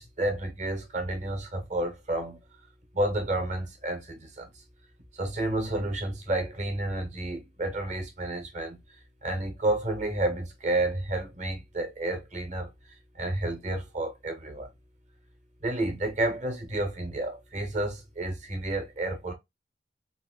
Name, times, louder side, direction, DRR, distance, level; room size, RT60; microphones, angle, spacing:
voice 1, 0.0-2.4 2.9-4.5 5.1-8.8 9.2-12.7 13.1-14.7 15.6-19.3, right 1 dB, 40° right, 0.9 m, -30 dB
3.9 x 2.3 x 2.3 m
head